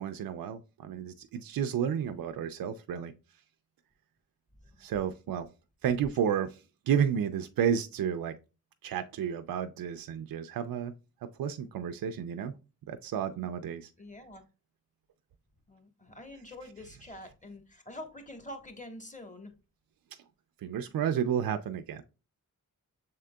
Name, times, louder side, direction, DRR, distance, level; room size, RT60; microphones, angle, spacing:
voice 1, 0.0-3.1 4.8-5.5 5.8-8.4 8.8-10.9 11.2-12.6 12.9-13.9 20.6-22.0, right 8 dB, 80° right, 0.5 m, -31 dB
voice 2, 14.0-14.4 15.7-19.5, left 1 dB, 20° left, 1.2 m, -46 dB
6.5 x 3.7 x 2.2 m
cardioid pair, 65°, 34 cm